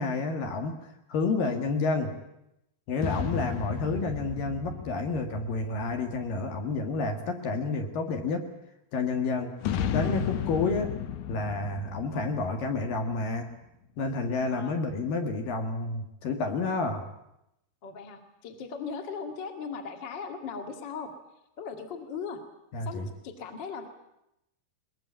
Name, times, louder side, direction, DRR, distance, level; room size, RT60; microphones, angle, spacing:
voice 1, 0.0-2.1 2.9-8.5 8.9-9.5 9.9-10.9 11.3-13.5 14.0-17.0 22.7-23.1, left 3 dB, 60° left, 4 dB, 3.0 m, -30 dB
sound 1, 3.0-6.7 9.6-13.4, left 8 dB, 90° left, 1.8 m, -34 dB
voice 2, 17.8-21.1 21.6-22.4 22.8-23.9, left 5 dB, 35° left, 5 dB, 2.0 m, -38 dB
21.5 x 21.0 x 8.7 m, 0.84 s
omnidirectional pair, 5.1 m